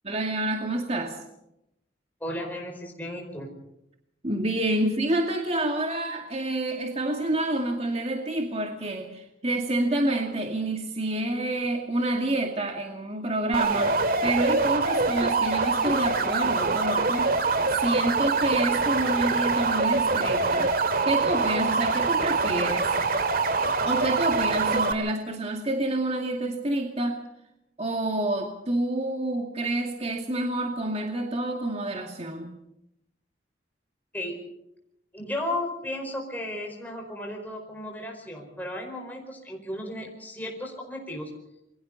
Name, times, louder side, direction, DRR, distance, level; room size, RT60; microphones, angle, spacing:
voice 1, 0.0-1.2 4.2-17.3 17.7-20.8 21.0-22.9 23.9-27.2 27.8-32.6, right 1 dB, 35° right, 2 dB, 2.2 m, -28 dB
voice 2, 2.2-3.5 34.1-34.4 35.1-41.3, left 1 dB, 10° left, 1 dB, 4.8 m, -34 dB
sound 1, 13.5-24.9, right 4 dB, 55° right, 2.0 m, -24 dB
28.0 x 23.0 x 4.1 m, 0.82 s
head